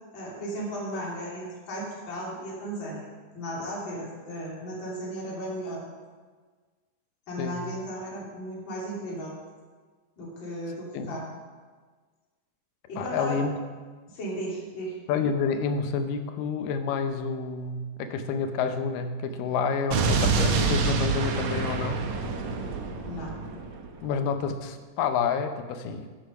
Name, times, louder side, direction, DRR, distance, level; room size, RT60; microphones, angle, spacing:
voice 1, 0.1-3.0 3.3-5.8 7.3-9.3 10.2-11.2 12.9-13.4 14.1-14.9 23.0-23.3, equal, 35° left, -5 dB, 3.2 m, -35 dB
voice 2, 13.0-13.5 15.1-22.0 24.0-26.1, left 5 dB, 85° left, 8 dB, 2.4 m, -29 dB
Explosion, 19.9-24.0, right 4 dB, 65° right, 2.0 m, -26 dB
10.0 x 8.1 x 5.6 m, 1.4 s
omnidirectional pair, 3.8 m